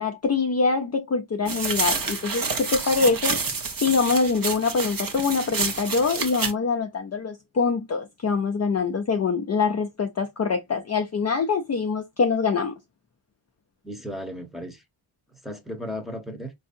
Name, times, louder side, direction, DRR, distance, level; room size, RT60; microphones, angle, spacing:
voice 1, 0.0-3.4 3.8-12.7, left 4 dB, 35° left, 0.5 m, -24 dB
sound 1, 1.5-6.5, right 4 dB, 45° right, 1.0 m, -28 dB
voice 2, 13.8-14.8 15.4-16.5, equal, ahead, 0.9 m, -35 dB
4.5 x 2.7 x 2.5 m
wide cardioid pair, 120°, 47 cm